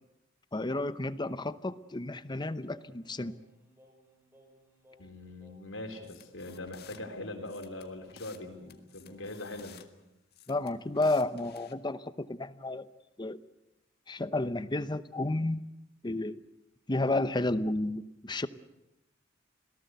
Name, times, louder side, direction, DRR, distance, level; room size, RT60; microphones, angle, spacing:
voice 1, 0.5-3.3 10.5-12.9 13.2-13.4 14.1-15.6 16.0-16.4 16.9-18.5, left 2 dB, 25° left, 13 dB, 0.8 m, -31 dB
Singing, 2.7-9.5, equal, 10° right, 4.6 m, -62 dB
voice 2, 5.0-9.8, left 2 dB, 80° left, 4 dB, 3.8 m, -42 dB
sound 1, 6.0-7.0 7.4-8.4 8.7-9.9 10.3-11.7, left 8 dB, 55° left, 1.7 m, -54 dB
27.5 x 18.0 x 8.2 m, 0.90 s
head